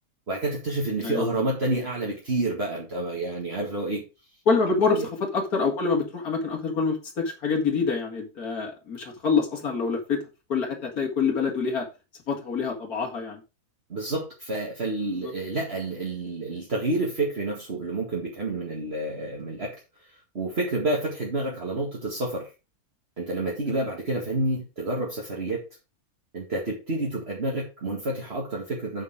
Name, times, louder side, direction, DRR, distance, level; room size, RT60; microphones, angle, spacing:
voice 1, 0.3-4.1 4.7-5.1 13.9-19.8 20.3-22.5 23.2-25.7 26.3-29.0, right 2 dB, 45° right, -3 dB, 2.3 m, -29 dB
voice 2, 4.5-10.2 10.5-11.9 12.3-13.4 15.2-15.3, left 5 dB, 75° left, 0 dB, 2.6 m, -26 dB
7.7 x 7.0 x 4.9 m, 0.29 s
omnidirectional pair, 1.6 m